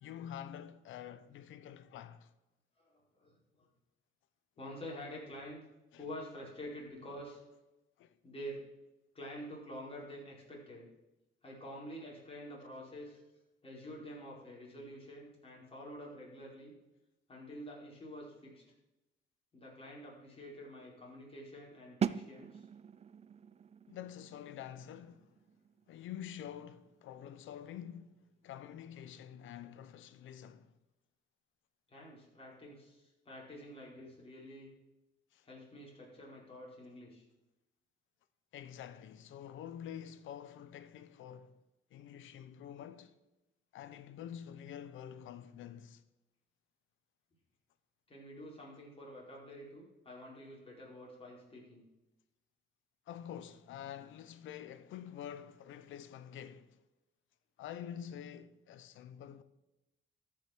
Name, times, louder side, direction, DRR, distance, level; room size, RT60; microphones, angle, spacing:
voice 1, 0.0-2.3 5.9-6.1 8.0-8.2 23.9-25.4 25.9-30.7 35.3-35.4 38.5-41.6 41.9-43.2 43.7-46.0 53.1-56.8 57.6-59.4, left 9 dB, 80° left, 0.8 m, -47 dB
voice 2, 2.7-3.7 4.6-5.6 6.0-7.4 8.2-8.6 9.1-10.9 11.4-13.2 13.6-16.7 17.3-18.6 19.5-22.7 31.9-34.7 35.4-37.2 48.1-51.8, equal, 30° left, 4.8 m, -48 dB
sound 1, 22.0-27.7, right 7 dB, 30° right, 0.4 m, -42 dB
13.5 x 6.0 x 6.1 m
cardioid pair, 90°, 20 cm